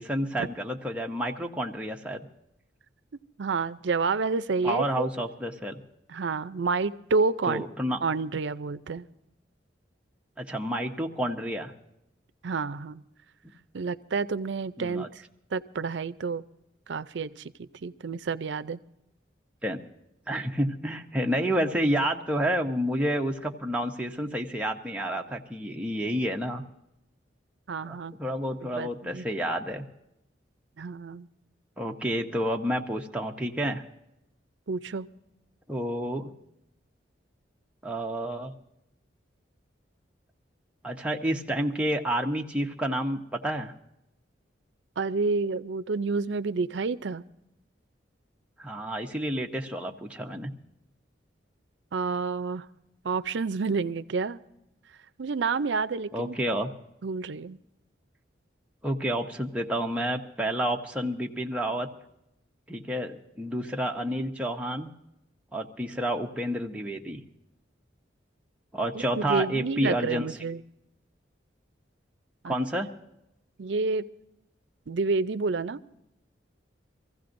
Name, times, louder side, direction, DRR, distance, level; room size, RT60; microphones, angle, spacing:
voice 1, 0.0-2.2 4.6-5.8 7.5-8.0 10.4-11.7 14.8-15.1 19.6-19.8 20.3-26.6 27.8-29.8 31.8-33.8 35.7-36.3 37.8-38.5 40.8-43.7 48.6-50.5 56.1-56.7 58.8-61.9 62.7-64.9 65.5-67.2 68.7-70.3 72.4-72.9, equal, 5° right, 1 dB, 0.8 m, -29 dB
voice 2, 3.4-5.1 6.1-7.6 8.0-9.1 12.4-13.0 13.7-15.1 15.5-16.4 16.9-18.8 27.7-28.1 28.6-29.3 30.8-31.3 34.7-35.1 45.0-47.2 51.9-52.7 53.0-54.4 55.2-56.6 57.0-57.6 68.9-70.6 72.4-72.5 73.6-74.1 74.9-75.8, right 4 dB, 70° right, 13 dB, 0.5 m, -29 dB
24.5 x 15.5 x 2.6 m, 0.83 s
head